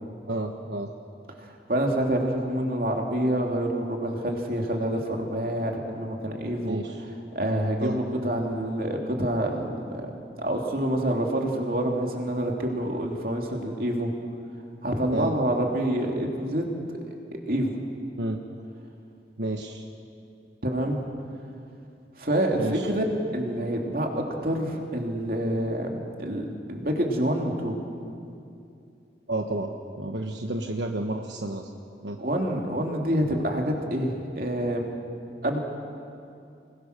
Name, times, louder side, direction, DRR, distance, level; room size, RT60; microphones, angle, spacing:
voice 1, 0.3-0.9 6.6-7.0 7.8-8.0 15.1-15.3 18.2-18.4 19.4-19.9 22.6-22.9 29.3-29.7 30.0-31.7 32.0-32.2, right 2 dB, 80° right, 3 dB, 1.3 m, -30 dB
voice 2, 1.7-6.8 7.3-10.1 10.4-14.1 14.8-16.7 17.5-17.7 20.6-21.0 22.2-23.0 23.3-27.8 32.2-34.8 35.4-35.6, right 1 dB, 50° right, 1 dB, 2.9 m, -27 dB
28.0 x 21.5 x 6.7 m, 2.6 s
head